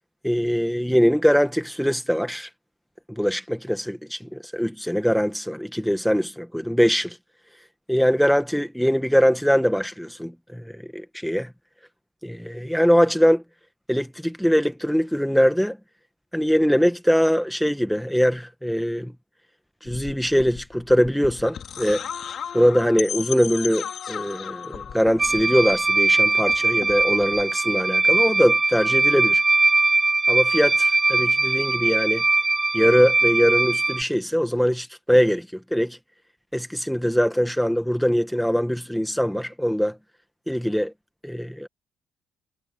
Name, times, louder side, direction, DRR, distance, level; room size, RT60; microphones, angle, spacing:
voice 1, 0.2-2.5 3.1-7.2 7.9-11.5 12.2-13.4 13.9-15.8 16.3-19.1 19.8-22.0 22.5-29.4 30.3-32.2 32.7-36.0 36.5-40.0 40.5-40.9 41.2-41.7, equal, ahead, 1.6 m, -22 dB
sound 1, 19.9-26.1 26.4-27.4, left 8 dB, 55° left, 2.6 m, -36 dB
sound 2, 25.2-34.0, right 3 dB, 20° right, 1.7 m, -21 dB
cardioid pair, 95°, 0 cm